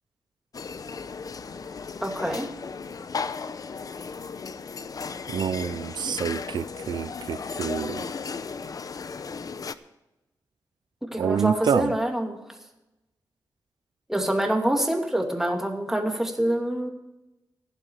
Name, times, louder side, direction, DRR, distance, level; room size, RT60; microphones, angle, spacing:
sound 1, 0.5-9.7, left 5 dB, 55° left, 0.7 m, -35 dB
voice 1, 2.0-2.5 11.0-12.4 14.1-16.9, right 1 dB, 5° right, 2 dB, 2.6 m, -26 dB
voice 2, 5.3-8.0 11.2-11.9, right 8 dB, 75° right, 15 dB, 0.4 m, -27 dB
15.5 x 11.5 x 4.8 m, 0.97 s
cardioid pair, 80°, 7 cm